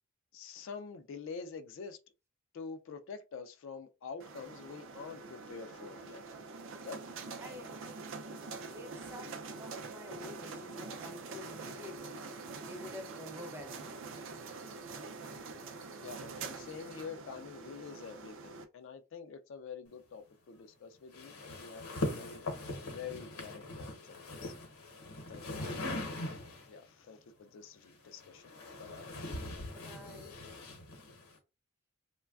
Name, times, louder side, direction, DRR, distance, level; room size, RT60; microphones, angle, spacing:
voice 1, 0.3-2.0 2.5-6.2 6.8-7.0 16.0-22.5 22.8-24.5 25.3-26.1 26.7-29.1, left 5 dB, 60° left, 0.3 m, -47 dB
sound 1, 4.2-18.6, right 4 dB, 60° right, 0.4 m, -45 dB
voice 2, 7.4-8.2 8.7-12.3 12.6-14.1 25.5-26.1 29.7-30.4, left 2 dB, 10° right, 0.5 m, -49 dB
sound 2, 21.1-26.8 27.8-31.4, left 1 dB, 75° left, 0.8 m, -41 dB
3.1 x 2.2 x 2.3 m
head